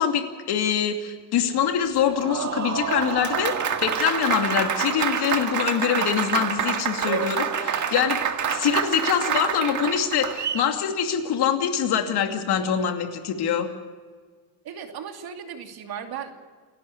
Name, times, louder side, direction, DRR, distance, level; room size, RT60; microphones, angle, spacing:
voice 1, 0.0-3.5 3.8-8.2 8.5-13.7, left 8 dB, 70° left, 5 dB, 2.7 m, -24 dB
Applause, 2.0-10.7, right 7 dB, 45° right, 1.8 m, -27 dB
voice 2, 14.6-16.3, right 8 dB, 60° right, 4 dB, 2.8 m, -36 dB
28.5 x 12.0 x 8.4 m, 1.6 s
cardioid pair, 150°, 41 cm